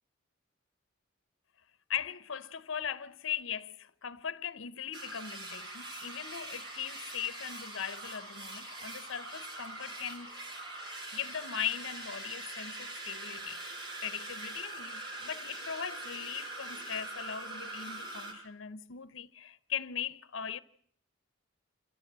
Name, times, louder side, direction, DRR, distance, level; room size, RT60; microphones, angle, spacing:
voice 1, 1.9-10.3 11.1-13.6 14.0-20.6, left 8 dB, 65° left, 0.8 m, -39 dB
sound 1, 4.9-18.3, right 2 dB, 55° right, 5.9 m, -43 dB
28.0 x 13.5 x 7.4 m
head